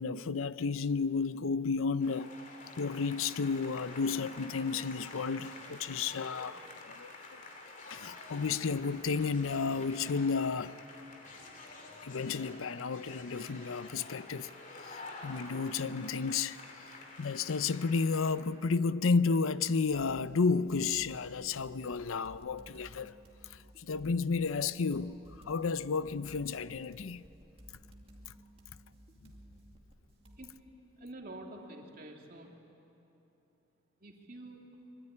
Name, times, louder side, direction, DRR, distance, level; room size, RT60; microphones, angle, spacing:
voice 1, 0.0-2.4 2.8-7.4 7.9-10.8 12.0-14.5 14.8-23.2 23.4-25.2 25.4-27.3, left 4 dB, 85° left, 0.6 m, -32 dB
sound 1, 2.0-18.3, left 2 dB, 40° left, 2.9 m, -49 dB
sound 2, 19.9-30.6, equal, 30° right, 2.3 m, -57 dB
voice 2, 31.0-32.5 34.0-34.6, right 1 dB, 45° right, 2.9 m, -47 dB
24.0 x 23.5 x 9.8 m
head